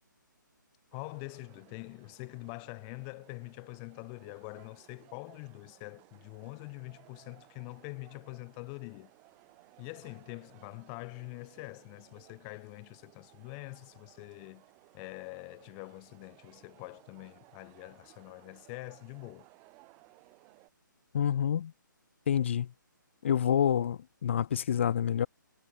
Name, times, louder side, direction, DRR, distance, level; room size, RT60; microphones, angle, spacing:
voice 1, 0.9-9.1 9.8-14.6 14.9-19.5, left 40 dB or more, 20° left, 1.6 m, -45 dB
sound 1, 0.9-20.7, right 27 dB, 20° right, 4.1 m, -60 dB
voice 2, 21.1-21.7 22.3-22.7 23.2-25.3, left 9 dB, 35° left, 0.5 m, -27 dB
figure-of-eight pair, 140°, 11 cm